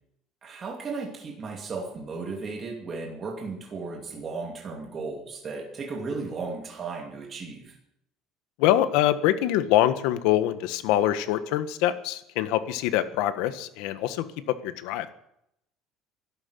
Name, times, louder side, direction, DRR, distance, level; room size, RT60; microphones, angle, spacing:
voice 1, 0.4-7.7, right 4 dB, 25° right, 1 dB, 2.6 m, -35 dB
voice 2, 8.6-15.1, left 13 dB, 75° left, 11 dB, 1.5 m, -24 dB
12.5 x 11.5 x 9.8 m, 0.78 s
cardioid pair, 165°, 0 cm